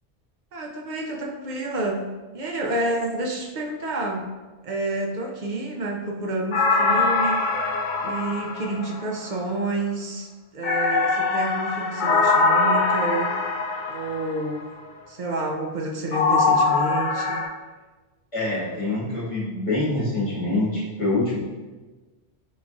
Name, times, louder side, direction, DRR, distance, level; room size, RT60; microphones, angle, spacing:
voice 1, 0.5-2.0 2.3-4.3 4.6-7.4 8.0-10.3 10.5-13.4 13.9-14.7 15.1-17.5, right 2 dB, 50° right, 1 dB, 0.6 m, -29 dB
sound 1, 6.5-9.3 10.6-14.5 16.1-17.5, left 4 dB, 55° left, 0.5 m, -22 dB
voice 2, 18.3-21.4, left 2 dB, 30° left, -8 dB, 1.6 m, -25 dB
4.7 x 3.8 x 2.5 m, 1.3 s
omnidirectional pair, 1.2 m